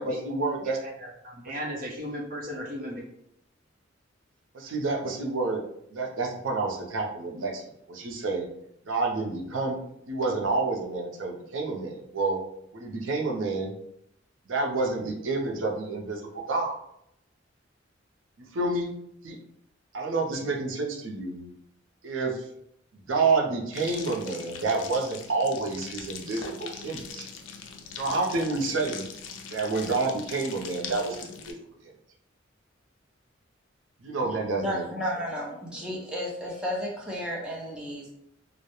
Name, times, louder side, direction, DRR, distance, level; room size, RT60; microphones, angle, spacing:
voice 1, 0.0-0.8 4.5-5.6 5.9-7.6 7.9-8.5 8.9-9.8 10.1-12.4 12.7-13.7 14.5-16.8 18.5-18.9 19.2-19.4 19.9-21.5 22.0-22.4 22.9-27.3 28.0-29.1 29.5-31.6 31.8-31.9 34.0-34.9, right 3 dB, 85° right, 1 dB, 0.5 m, -29 dB
voice 2, 0.8-3.0, equal, 45° right, -2 dB, 0.7 m, -36 dB
sound 1, 23.7-31.5, left 6 dB, 70° left, 0.4 m, -41 dB
voice 3, 34.2-38.1, equal, 5° right, -4 dB, 0.5 m, -33 dB
2.2 x 2.0 x 2.9 m, 0.75 s
head